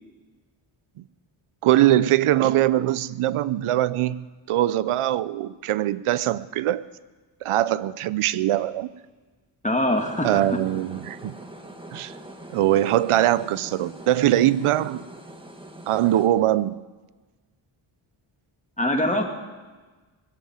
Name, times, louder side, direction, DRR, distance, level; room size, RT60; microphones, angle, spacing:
voice 1, 1.6-6.8 7.4-8.9 10.2-11.4 11.9-12.1 12.5-15.0 15.9-16.8, right 13 dB, 85° right, 17 dB, 0.6 m, -22 dB
voice 2, 9.6-10.4 18.8-19.2, left 1 dB, 15° left, 3 dB, 2.0 m, -23 dB
sound 1, 10.0-16.3, right 1 dB, 10° right, 1.6 m, -42 dB
20.5 x 7.5 x 8.8 m, 1.3 s
wide cardioid pair, 100°, 50 cm